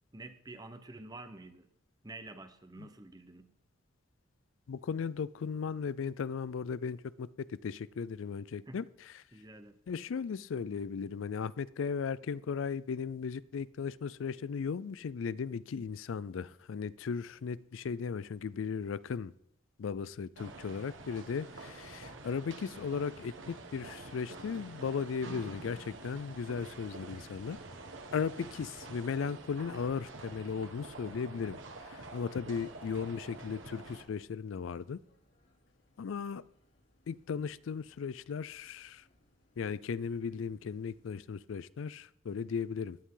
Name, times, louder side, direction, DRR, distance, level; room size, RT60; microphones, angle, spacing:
voice 1, 0.1-1.7 2.0-3.5 8.7-8.8 9.3-9.8, right 2 dB, 20° right, 9 dB, 0.9 m, -48 dB
voice 2, 4.7-8.8 9.9-19.3 19.8-27.6 28.1-35.0 36.0-36.4 37.1-39.0 39.6-43.0, left 6 dB, 90° left, 19 dB, 0.4 m, -36 dB
sound 1, 20.4-34.0, right 2 dB, 85° right, 1.5 m, -48 dB
sound 2, 29.4-41.2, left 1 dB, 70° left, 3.2 m, -70 dB
16.5 x 10.0 x 3.8 m, 0.74 s
head